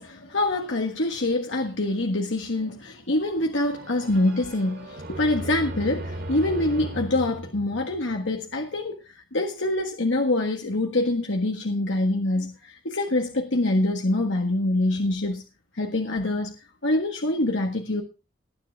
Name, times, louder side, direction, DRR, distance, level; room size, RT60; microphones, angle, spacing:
voice 1, 0.0-15.4 15.7-16.5 16.8-18.0, left 2 dB, 80° left, 1.6 m, -25 dB
sound 1, 3.6-8.4, right 1 dB, 55° right, 2.6 m, -36 dB
19.0 x 9.7 x 3.5 m
head